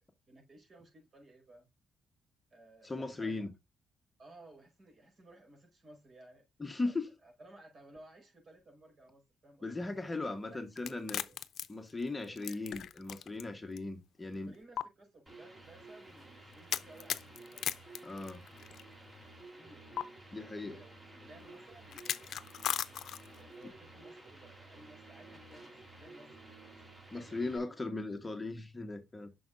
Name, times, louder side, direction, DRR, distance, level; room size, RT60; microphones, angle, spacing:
voice 1, 0.3-1.7 2.5-3.4 4.2-6.5 6.8-9.8 10.4-11.4 12.2-12.4 14.4-17.7 18.6-18.9 19.6-19.9 20.5-22.3 23.3-26.8 27.1-27.7, right 2 dB, 50° right, 5.0 m, -58 dB
voice 2, 2.8-3.5 6.6-7.1 9.6-11.2 11.7-14.5 18.0-18.4 20.3-20.8 27.1-29.3, left 2 dB, 20° left, 1.0 m, -38 dB
sound 1, 10.8-13.4 13.8-13.9 14.8-14.9 16.7-18.8 20.0-20.1 21.9-23.4, left 9 dB, 65° left, 0.6 m, -37 dB
sound 2, 15.3-27.6, right 2 dB, 20° right, 3.2 m, -53 dB
8.9 x 6.3 x 2.4 m
cardioid pair, 90°, 0 cm